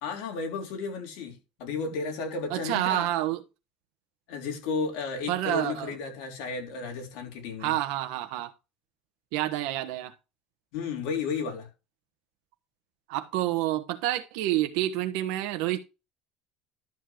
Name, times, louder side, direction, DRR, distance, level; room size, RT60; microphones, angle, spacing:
voice 1, 0.0-3.1 4.3-7.8 10.7-11.7, left 4 dB, 75° left, 3.7 m, -33 dB
voice 2, 2.5-3.4 5.3-5.9 7.6-8.5 9.3-10.1 13.1-15.8, right 14 dB, 75° right, 1.2 m, -28 dB
12.0 x 7.3 x 3.0 m
cardioid pair, 135°, 0 cm